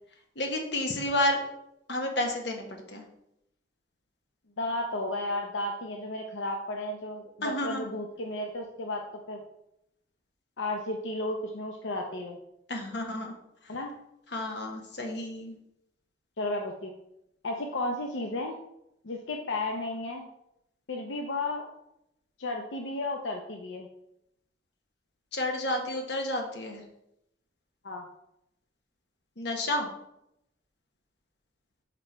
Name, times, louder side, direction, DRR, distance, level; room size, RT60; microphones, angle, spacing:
voice 1, 0.3-1.4 1.9-3.0 7.4-7.9 12.7-13.3 13.6-13.8 14.3-15.6 25.3-26.8 29.4-29.9, left 1 dB, 65° left, 3 dB, 1.2 m, -31 dB
voice 2, 4.6-9.0 9.3-9.4 10.6-12.4 13.7-13.9 16.4-16.9 17.4-18.6 19.0-20.2 20.9-21.7 22.4-23.9 27.8-28.1, left 2 dB, 85° left, 2 dB, 0.7 m, -33 dB
6.1 x 4.4 x 4.4 m, 0.81 s
head